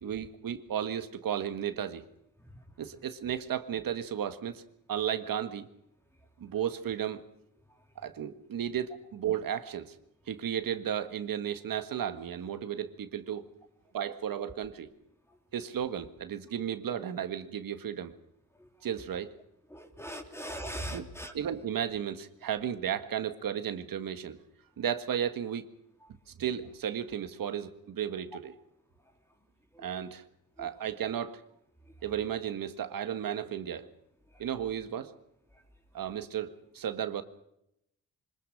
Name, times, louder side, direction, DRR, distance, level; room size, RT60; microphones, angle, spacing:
voice 1, 0.0-2.0 2.8-4.6 4.9-5.7 6.4-7.2 8.0-9.9 10.3-13.5 13.9-14.9 15.5-18.1 18.8-19.3 20.9-21.1 21.3-24.4 24.8-25.7 26.4-28.6 29.8-30.2 30.6-31.4 32.0-33.9 34.4-35.1 35.9-37.2, right 9 dB, 65° right, 9 dB, 1.7 m, -34 dB
voice 2, 19.7-21.3 29.7-29.8 30.6-30.7, equal, 5° left, 4 dB, 2.9 m, -40 dB
25.0 x 20.5 x 6.6 m, 0.80 s
cardioid pair, 100°, 37 cm